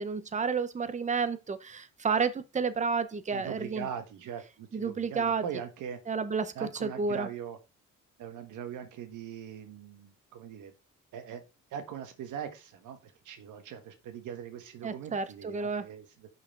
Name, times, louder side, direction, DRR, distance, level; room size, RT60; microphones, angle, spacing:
voice 1, 0.0-3.9 4.7-5.4 6.1-6.5 6.8-7.3 14.8-15.8, right 5 dB, 25° right, 0.8 m, -31 dB
voice 2, 3.3-6.0 6.5-7.6 8.2-10.7 11.1-11.4 11.7-16.3, right 8 dB, 80° right, 1.4 m, -41 dB
5.7 x 4.7 x 4.6 m
cardioid pair, 90°, 30 cm